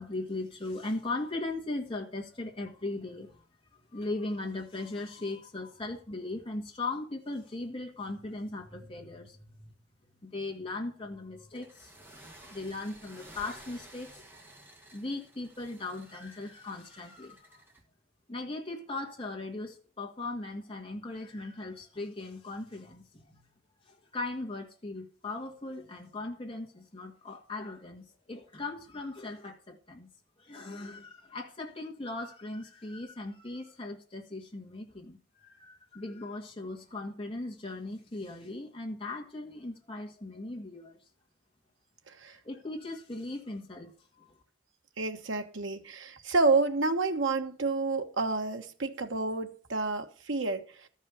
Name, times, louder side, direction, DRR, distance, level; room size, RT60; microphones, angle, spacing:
voice 1, 0.0-3.4 3.7-9.7 10.2-11.9 12.4-14.2 14.9-17.6 18.3-23.4 23.9-30.1 30.4-41.0 42.3-44.4, left 2 dB, 30° left, 1.8 m, -38 dB
sound 1, 11.5-17.8, right 1 dB, 10° right, 1.6 m, -53 dB
voice 2, 42.1-42.4 45.0-50.9, right 3 dB, 80° right, 1.2 m, -29 dB
13.0 x 5.5 x 6.7 m
head